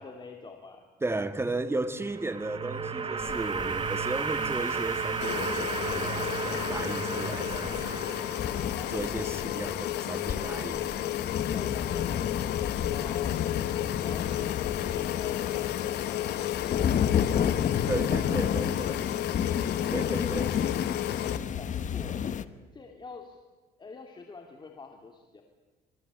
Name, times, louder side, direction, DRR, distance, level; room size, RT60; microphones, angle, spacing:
voice 1, 0.0-0.8 8.8-9.7 11.5-13.4 13.7-18.8 21.4-23.4 23.8-25.4, left 4 dB, 25° left, 3 dB, 2.8 m, -46 dB
voice 2, 1.0-8.1 8.9-10.9 17.9-19.1 19.9-20.6, right 2 dB, 15° right, 11 dB, 2.0 m, -35 dB
sound 1, 1.8-9.0, right 5 dB, 30° right, 1.8 m, -33 dB
sound 2, 3.2-22.5, left 8 dB, 45° left, 1.1 m, -32 dB
sound 3, 5.2-21.4, left 13 dB, 75° left, 1.4 m, -32 dB
27.0 x 22.5 x 8.4 m, 1.2 s
cardioid pair, 110°, 17 cm